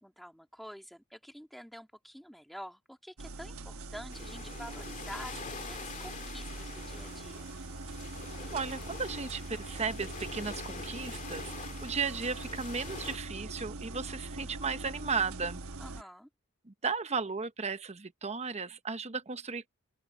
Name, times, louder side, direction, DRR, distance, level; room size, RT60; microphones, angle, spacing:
voice 1, 0.0-7.5 15.8-16.3, equal, ahead, 2.6 m, -48 dB
sound 1, 3.2-16.0, right 3 dB, 70° right, 1.2 m, -43 dB
sound 2, 4.1-13.2, left 5 dB, 35° left, 2.1 m, -45 dB
voice 2, 8.5-15.6 16.6-19.7, right 5 dB, 30° right, 1.0 m, -35 dB
open air
head